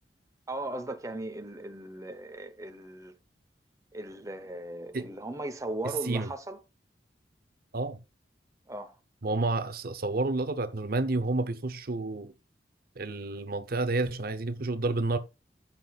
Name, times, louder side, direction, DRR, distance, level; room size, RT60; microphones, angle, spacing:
voice 1, 0.5-3.1 3.9-6.6 8.7-9.0, right 1 dB, 20° right, 0.9 m, -37 dB
voice 2, 9.2-12.3 13.0-15.2, right 2 dB, 60° right, 0.8 m, -30 dB
15.0 x 6.1 x 2.4 m
head